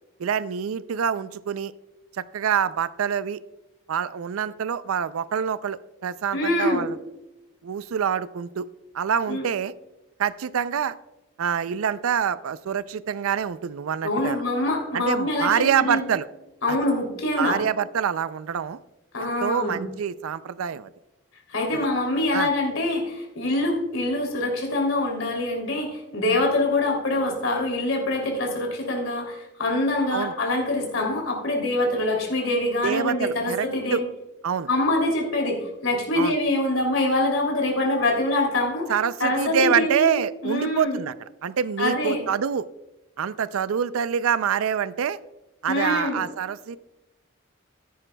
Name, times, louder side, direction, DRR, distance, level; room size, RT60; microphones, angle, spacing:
voice 1, 0.2-1.7 2.2-3.4 3.9-7.0 7.6-8.7 8.9-9.7 10.2-11.0 11.4-14.4 14.9-16.3 16.7-16.8 17.4-18.8 19.2-20.9 21.7-21.9 22.3-22.5 30.1-30.3 32.8-34.0 34.4-34.7 36.2-36.4 38.9-41.1 41.4-42.7 43.2-45.2 45.6-46.8, right 7 dB, 85° right, 16 dB, 0.4 m, -26 dB
voice 2, 6.3-6.9 9.3-9.4 14.0-16.0 16.6-17.6 19.1-19.8 21.5-34.1 34.7-38.9 39.2-40.1 40.4-41.0 41.8-42.2 45.7-46.2, left 2 dB, 80° left, 1 dB, 2.9 m, -25 dB
14.5 x 10.0 x 2.2 m, 1.0 s
head